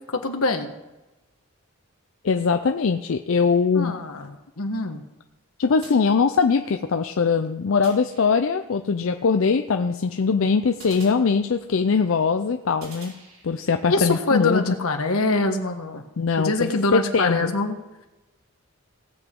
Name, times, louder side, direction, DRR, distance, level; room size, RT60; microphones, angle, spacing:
voice 1, 0.1-0.7 3.7-5.0 13.9-16.0 16.4-17.7, left 3 dB, 85° left, 5 dB, 1.4 m, -24 dB
voice 2, 2.2-3.9 5.6-13.1 13.4-14.7 16.2-17.5, left 5 dB, 65° left, 7 dB, 0.5 m, -21 dB
sound 1, 5.8-6.7 7.8-8.7 10.8-11.9 12.8-13.9, right 2 dB, 70° right, 4.8 m, -47 dB
18.0 x 8.0 x 3.8 m, 1.0 s
head